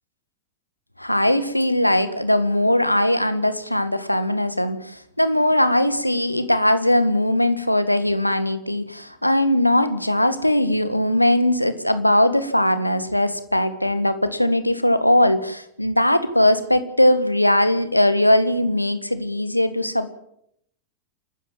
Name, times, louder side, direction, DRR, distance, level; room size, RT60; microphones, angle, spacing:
voice 1, 1.0-20.1, left 1 dB, 90° left, 12 dB, 1.8 m, -20 dB
28.5 x 13.0 x 7.6 m, 0.71 s
figure-of-eight pair, 90°, 0 cm